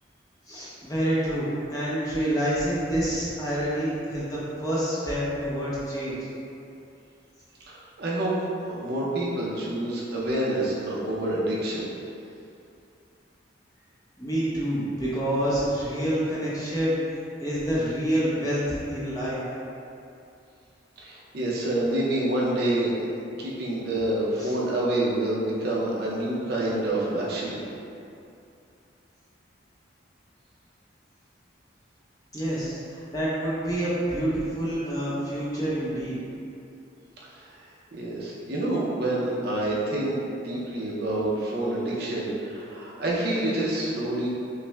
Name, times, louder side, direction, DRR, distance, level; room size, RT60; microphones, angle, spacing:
voice 1, 0.5-6.2 14.2-19.4 24.4-24.5 32.3-36.2, right 1 dB, 20° left, -9 dB, 0.7 m, -27 dB
voice 2, 7.7-8.3 8.7-11.9 21.0-22.9 23.4-27.6 37.9-44.3, right 1 dB, 55° right, -5 dB, 0.6 m, -27 dB
5.5 x 2.1 x 2.3 m, 2.6 s
head